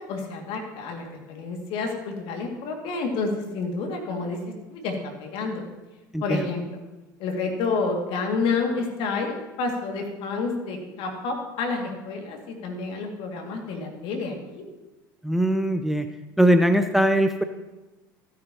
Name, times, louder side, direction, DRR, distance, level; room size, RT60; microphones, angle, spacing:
voice 1, 0.0-5.6 6.2-6.6 7.2-14.6, left 4 dB, 55° left, 2 dB, 2.2 m, -29 dB
voice 2, 6.1-6.4 15.2-16.1 16.4-17.4, equal, ahead, 9 dB, 0.6 m, -20 dB
15.5 x 9.3 x 2.9 m, 1.1 s
figure-of-eight pair, 70°, 11 cm